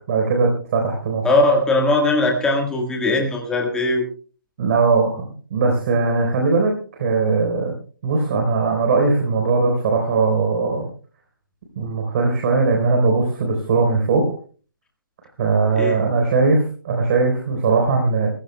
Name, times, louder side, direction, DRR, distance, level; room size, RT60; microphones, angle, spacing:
voice 1, 0.1-1.3 4.6-5.2 5.5-7.7 8.0-10.9 11.8-14.3 15.4-18.3, right 4 dB, 40° right, 2 dB, 3.9 m, -19 dB
voice 2, 1.2-4.0 15.7-16.0, left 2 dB, 5° left, 0 dB, 1.6 m, -19 dB
28.0 x 15.0 x 2.2 m, 0.40 s
hypercardioid pair, 155°, 11 cm